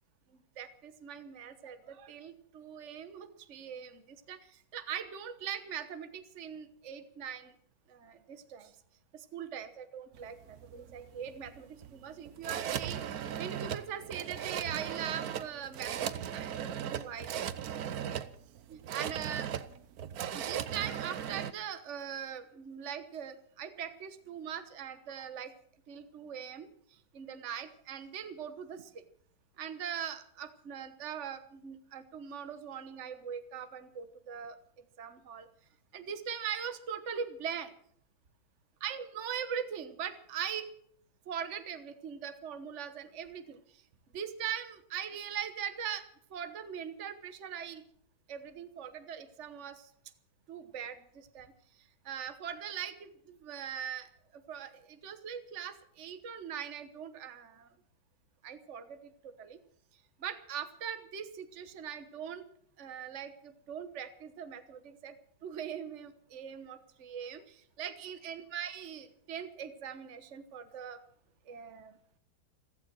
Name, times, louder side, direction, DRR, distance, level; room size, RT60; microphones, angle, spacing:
voice 1, 0.6-7.5 7.9-8.7 9.1-17.3 17.7-18.2 18.7-19.5 20.3-25.5 25.9-26.7 27.1-29.0 29.6-34.6 35.0-35.5 35.9-37.7 38.8-40.7 41.3-43.8 44.1-46.0 46.3-47.8 48.3-49.9 50.5-51.5 51.8-57.7 58.4-59.6 60.2-62.4 62.8-65.1 65.4-71.0 71.5-71.9, right 8 dB, 45° right, 9 dB, 1.4 m, -41 dB
sound 1, 10.1-21.5, right 9 dB, 65° right, 1.3 m, -38 dB
15.5 x 14.5 x 6.1 m, 0.64 s
omnidirectional pair, 1.8 m